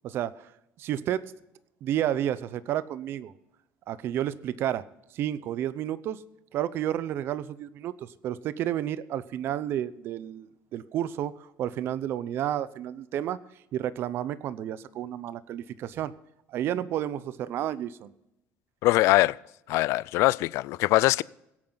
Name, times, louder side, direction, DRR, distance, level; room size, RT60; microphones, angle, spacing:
voice 1, 0.0-0.5 0.8-1.3 1.8-3.3 3.9-4.8 5.1-6.2 6.5-13.4 13.7-16.1 16.5-18.1, right 11 dB, 50° right, 0.7 m, -31 dB
voice 2, 18.8-19.4 19.7-21.2, left 18 dB, 65° left, 0.4 m, -22 dB
22.0 x 8.8 x 3.9 m
cardioid pair, 145°, 5 cm